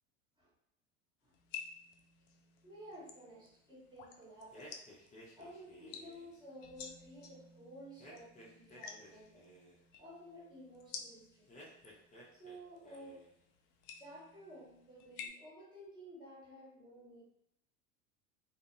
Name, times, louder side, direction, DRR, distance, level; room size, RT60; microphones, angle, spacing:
sound 1, 1.3-15.3, left 6 dB, 55° left, 0.5 m, -53 dB
voice 1, 2.6-4.7 5.4-9.5 10.0-11.7 12.3-13.3 13.9-17.2, equal, 10° right, -6 dB, 1.1 m, -53 dB
sound 2, 4.5-6.4 8.0-9.8 11.5-12.6 12.8-13.4, equal, 20° left, 0.7 m, -56 dB
2.5 x 2.0 x 2.5 m, 0.74 s
hypercardioid pair, 85°, 38 cm